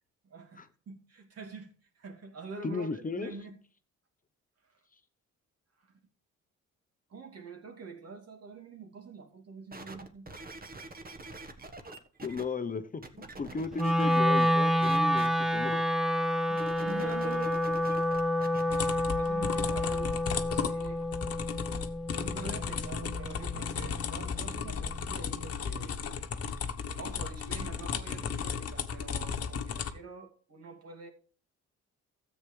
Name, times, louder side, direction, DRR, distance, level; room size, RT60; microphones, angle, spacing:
voice 1, 0.2-3.6 5.8-5.9 7.1-10.3 16.7-17.6 18.9-21.0 22.1-26.0 27.0-31.1, right 4 dB, 55° right, 2.7 m, -45 dB
voice 2, 2.6-3.3 12.2-13.0 13.4-15.8, left 4 dB, 25° left, 0.8 m, -35 dB
sound 1, 9.7-12.4 13.0-14.5 14.8-15.3 16.5-18.8 19.4-19.5, right 2 dB, 30° right, 1.4 m, -44 dB
Wind instrument woodwind instrument, 13.8-23.9, equal, ahead, 1.0 m, -29 dB
sound 2, 18.7-29.9, left 6 dB, 50° left, 1.2 m, -35 dB
13.5 x 8.2 x 3.3 m
cardioid pair, 90°, 30 cm